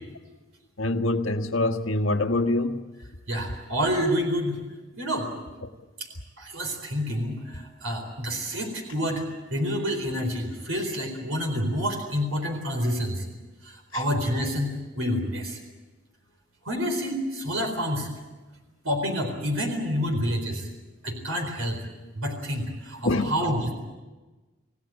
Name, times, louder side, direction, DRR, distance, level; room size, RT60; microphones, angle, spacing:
voice 1, 0.8-2.8 13.9-14.0 23.0-23.3, left 2 dB, 80° left, 1.6 m, -25 dB
voice 2, 3.3-4.6 5.0-5.3 6.4-9.2 9.5-13.2 13.6-15.6 16.7-18.1 18.8-20.7 21.0-21.8 22.2-23.7, equal, 90° right, 4.2 m, -28 dB
28.0 x 17.0 x 8.9 m
head